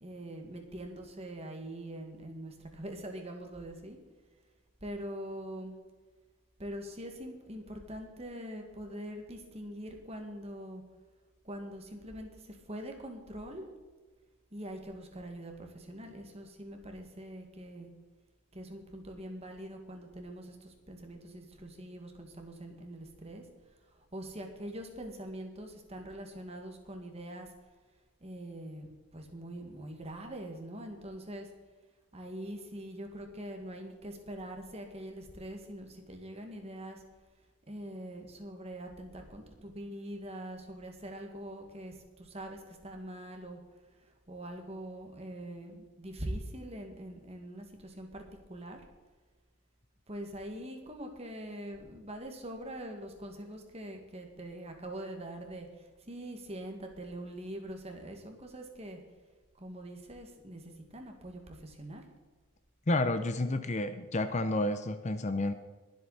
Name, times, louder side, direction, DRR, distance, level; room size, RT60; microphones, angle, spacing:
voice 1, 0.0-4.0 4.8-5.7 6.6-10.8 11.4-13.7 14.5-17.9 18.5-23.5 23.8-27.5 28.2-31.5 32.1-37.0 37.7-43.6 43.9-48.8 50.1-59.0 59.5-62.1, right 1 dB, 30° right, 3 dB, 1.9 m, -43 dB
voice 2, 62.9-65.5, left 2 dB, 30° left, 10 dB, 0.6 m, -30 dB
21.5 x 7.9 x 4.1 m, 1.3 s
head